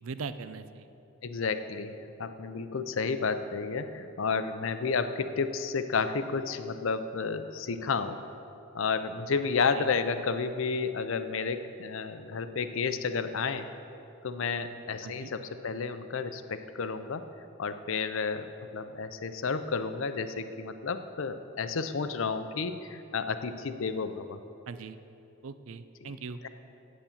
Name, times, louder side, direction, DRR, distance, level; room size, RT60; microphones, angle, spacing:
voice 1, 0.0-0.9 9.6-9.9 15.0-15.3 24.7-25.0 25.4-26.4, right 5 dB, 90° right, 12 dB, 0.5 m, -40 dB
voice 2, 1.2-8.2 8.7-13.7 14.2-17.2 17.6-24.4 26.0-26.1, left 5 dB, 70° left, 10 dB, 0.6 m, -31 dB
8.4 x 8.2 x 7.1 m, 2.8 s
head